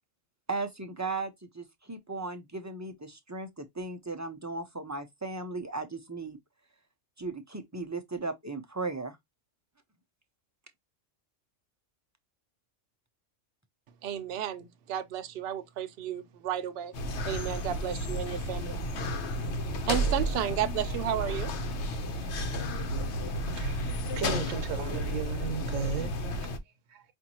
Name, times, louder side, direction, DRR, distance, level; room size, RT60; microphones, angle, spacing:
voice 1, 0.5-6.4 7.2-9.2, right 3 dB, 25° right, 0.3 m, -36 dB
voice 2, 14.0-16.9 17.3-18.8 19.9-21.5, right 10 dB, 60° right, 0.7 m, -33 dB
sound 1, 16.9-26.6, equal, 65° left, 1.0 m, -32 dB
voice 3, 23.5-26.4 26.9-27.0, right 7 dB, 80° right, 1.1 m, -36 dB
5.1 x 2.6 x 2.8 m
omnidirectional pair, 1.3 m